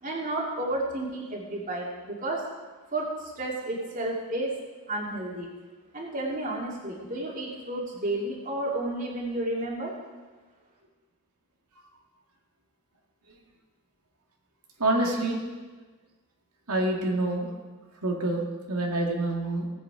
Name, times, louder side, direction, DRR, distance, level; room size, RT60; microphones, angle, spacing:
voice 1, 0.0-2.5 2.9-4.5 4.9-5.5 5.9-9.9, right 1 dB, 35° right, -2 dB, 2.4 m, -31 dB
voice 2, 14.8-15.4 16.7-17.5 18.0-19.7, right 2 dB, 90° right, -1 dB, 2.0 m, -27 dB
17.5 x 8.2 x 4.9 m, 1.3 s
head